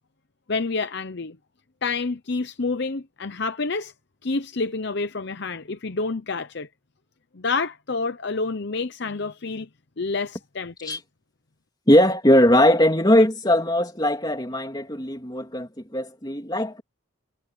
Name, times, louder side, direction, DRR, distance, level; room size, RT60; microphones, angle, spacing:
voice 1, 0.5-1.4 1.8-3.9 4.2-6.7 7.3-9.7 10.0-11.0, left 3 dB, 55° left, 0.8 m, -28 dB
voice 2, 11.9-16.8, left 1 dB, 20° left, 3.2 m, -20 dB
head